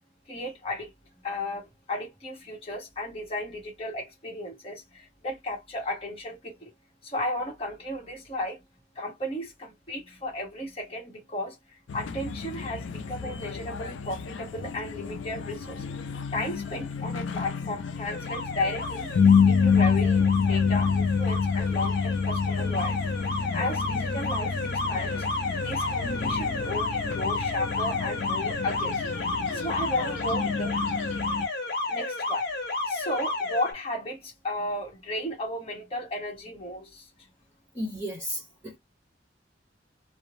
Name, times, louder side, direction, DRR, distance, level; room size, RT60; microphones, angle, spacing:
voice 1, 0.3-0.9 1.2-6.7 7.0-8.6 8.9-19.1 19.5-24.6 24.9-25.3 25.6-29.0 29.5-30.8 31.9-32.5 32.9-37.1, left 1 dB, 30° left, 1.0 m, -34 dB
sound 1, 11.9-31.5, left 5 dB, 75° left, 0.4 m, -28 dB
Alarm, 18.1-33.7, left 3 dB, 55° left, 1.0 m, -32 dB
voice 2, 37.7-38.8, equal, 10° right, 1.1 m, -34 dB
2.5 x 2.0 x 3.0 m
head